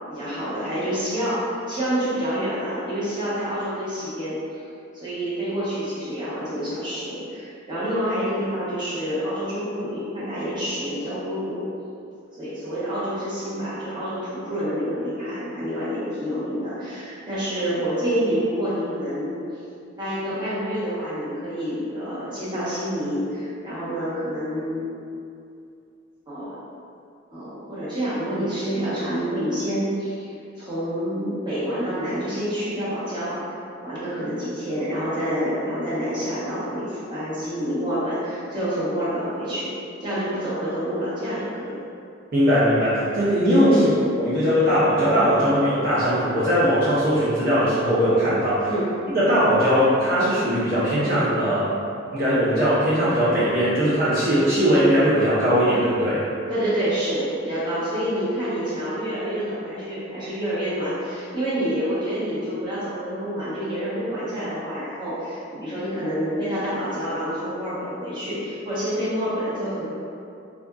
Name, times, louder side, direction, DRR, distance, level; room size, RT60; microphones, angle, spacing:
voice 1, 0.1-1.4 1.7-4.6 4.9-11.6 12.3-19.4 20.0-24.9 26.3-26.5 27.3-30.3 30.6-33.6 33.8-39.7 40.0-41.7 43.7-43.9 48.6-48.9 56.5-69.8, equal, 25° right, -11 dB, 0.9 m, -28 dB
voice 2, 42.3-43.8 44.2-48.7 49.1-51.7 52.1-56.2, equal, 50° right, -11 dB, 0.7 m, -20 dB
3.5 x 2.5 x 2.3 m, 2.5 s
head